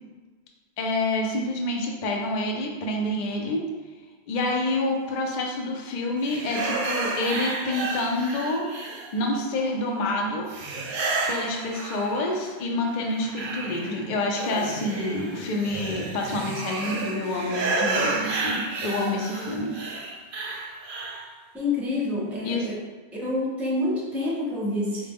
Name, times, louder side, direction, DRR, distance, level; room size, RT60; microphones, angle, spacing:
voice 1, 0.8-3.6 4.3-8.7 9.1-10.5 11.3-19.7 22.4-22.6, left 2 dB, 55° left, 1 dB, 0.6 m, -27 dB
sound 1, 6.2-9.4 10.5-12.5 12.9-21.3, right 3 dB, 60° right, 0.6 m, -31 dB
voice 2, 21.5-22.8 23.1-25.1, left 2 dB, ahead, -4 dB, 0.5 m, -27 dB
4.0 x 2.1 x 3.4 m, 1.4 s
omnidirectional pair, 1.1 m